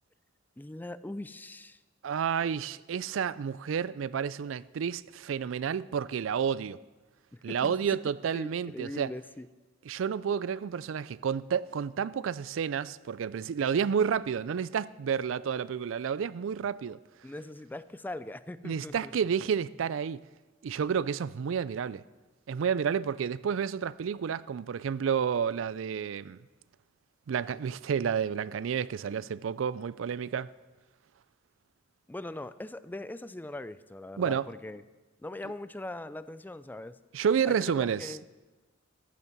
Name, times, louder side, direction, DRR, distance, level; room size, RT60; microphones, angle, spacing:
voice 1, 0.6-1.8 7.3-7.8 8.3-9.5 17.2-19.1 32.1-34.8 35.2-37.0 37.4-38.2, left 1 dB, 10° left, 0.3 m, -41 dB
voice 2, 2.0-6.8 7.4-9.1 9.9-17.0 18.6-20.2 20.6-22.0 22.5-26.4 27.3-30.5 34.2-34.5 37.1-38.2, right 7 dB, 80° right, 0.4 m, -30 dB
14.5 x 9.6 x 6.0 m
head